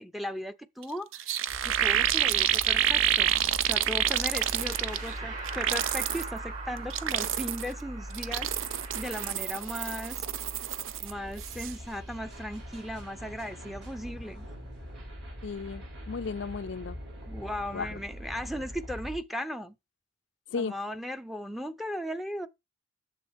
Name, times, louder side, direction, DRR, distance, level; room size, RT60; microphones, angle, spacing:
voice 1, 0.0-3.4 3.6-8.6 8.9-10.2 11.0-14.5 17.3-19.8 20.5-22.5, equal, ahead, 0.6 m, -37 dB
sound 1, 0.8-0.9 1.1-5.1 5.5-6.3 6.8-7.7 8.1-11.1 11.4-11.7, right 10 dB, 85° right, 0.5 m, -28 dB
sound 2, 1.5-19.2, equal, 65° right, 5.2 m, -43 dB
sound 3, 4.2-9.3, right 4 dB, 40° right, 6.1 m, -42 dB
voice 2, 15.4-17.0 17.7-18.0 20.5-20.7, left 5 dB, 65° left, 0.4 m, -35 dB
10.0 x 7.3 x 3.5 m
head